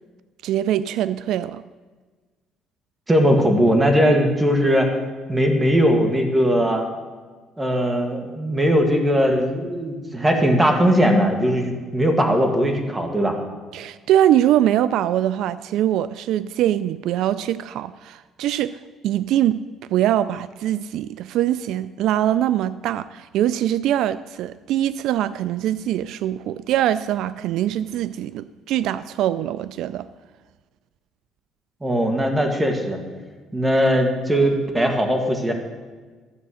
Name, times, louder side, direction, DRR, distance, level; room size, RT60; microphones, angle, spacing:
voice 1, 0.4-1.6 13.7-19.6 19.9-30.1, right 12 dB, 75° right, 0.3 m, -22 dB
voice 2, 3.1-4.9 5.3-6.9 7.6-13.3 31.8-33.0 33.5-35.5, equal, 10° right, 1.7 m, -19 dB
13.0 x 7.8 x 6.4 m
cardioid pair, 135°, 0 cm